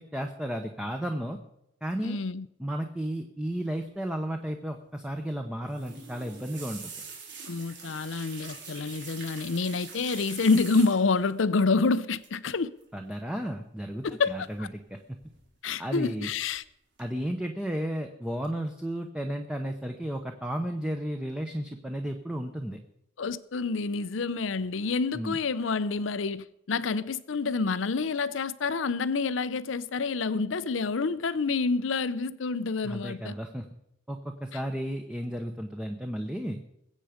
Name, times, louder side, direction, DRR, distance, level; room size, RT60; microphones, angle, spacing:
voice 1, 0.0-1.4 1.8-2.2 2.6-6.9 12.9-15.0 15.8-16.3 17.0-22.8 25.1-25.4 32.8-33.6 34.1-36.6, equal, 5° right, 0.9 m, -33 dB
voice 2, 2.0-2.5 7.5-12.7 14.0-14.7 15.6-16.6 23.2-33.4, left 4 dB, 85° left, 0.6 m, -28 dB
sound 1, 5.7-11.3 12.2-12.5 12.8-13.1 14.3-14.9 15.2-15.8 16.2-16.6 17.0-17.1, right 5 dB, 65° right, 3.8 m, -44 dB
21.0 x 8.3 x 5.1 m
head